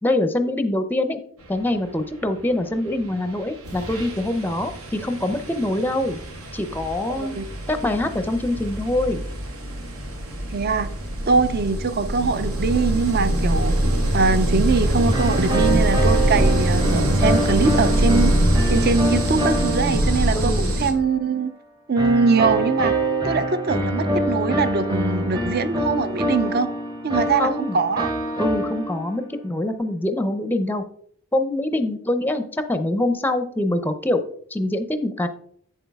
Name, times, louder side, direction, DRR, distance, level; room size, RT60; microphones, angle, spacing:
voice 1, 0.0-1.2 1.5-6.2 6.5-7.4 7.7-9.2 20.3-20.7 27.4-27.8 28.4-30.8 31.3-34.2 34.5-35.3, left 1 dB, 10° left, 0.5 m, -24 dB
sound 1, 3.1-3.3 3.6-20.9, right 1 dB, 80° right, 1.7 m, -23 dB
voice 2, 7.1-7.5 10.5-10.9 11.3-13.7 14.1-18.3 18.7-20.5 20.8-21.5 21.9-22.9 23.2-26.7 27.0-28.1, right 4 dB, 45° right, 0.5 m, -22 dB
sound 2, 15.1-20.9 22.0-29.4, right 1 dB, 20° right, 0.8 m, -25 dB
7.9 x 7.2 x 3.5 m
head